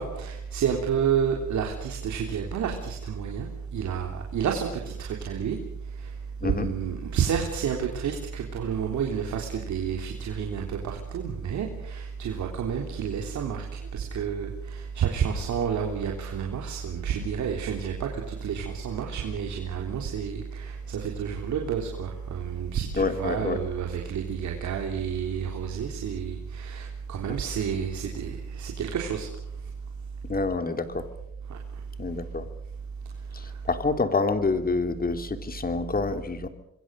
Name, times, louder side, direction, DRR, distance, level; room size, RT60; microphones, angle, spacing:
voice 1, 0.0-3.5 3.7-4.7 5.0-5.6 6.4-13.6 13.9-18.1 18.4-29.3, right 7 dB, 70° right, 1 dB, 3.5 m, -30 dB
voice 2, 23.0-23.6 30.2-31.1 32.0-32.4 33.3-36.5, left 4 dB, 30° left, 8 dB, 3.0 m, -27 dB
27.0 x 22.0 x 6.5 m, 0.79 s
cardioid pair, 90°, 30 cm